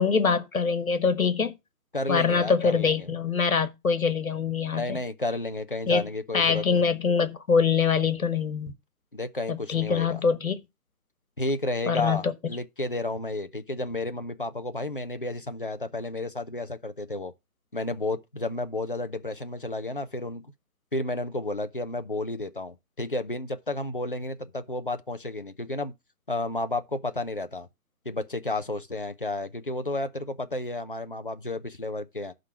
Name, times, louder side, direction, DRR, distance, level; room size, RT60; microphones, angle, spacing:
voice 1, 0.0-1.5 2.1-5.0 5.9-6.0 6.3-8.7 9.5-10.6 11.9-12.5, left 5 dB, 60° left, 1.6 m, -24 dB
voice 2, 1.9-3.1 4.7-6.8 9.1-10.2 11.4-17.3 17.7-20.5 20.9-25.9 26.3-27.7 28.1-32.3, left 2 dB, 35° left, 0.6 m, -32 dB
11.0 x 3.8 x 5.7 m
hypercardioid pair, 175°, 46 cm